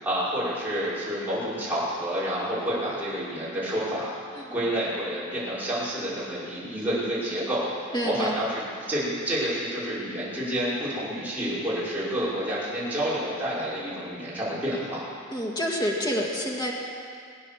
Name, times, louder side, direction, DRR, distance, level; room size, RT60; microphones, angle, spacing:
voice 1, 0.0-4.2 4.5-15.0, equal, 10° right, -10 dB, 5.4 m, -29 dB
voice 2, 7.9-8.4 15.3-16.7, equal, 20° left, -1 dB, 2.0 m, -28 dB
22.0 x 8.9 x 7.3 m, 2.2 s
head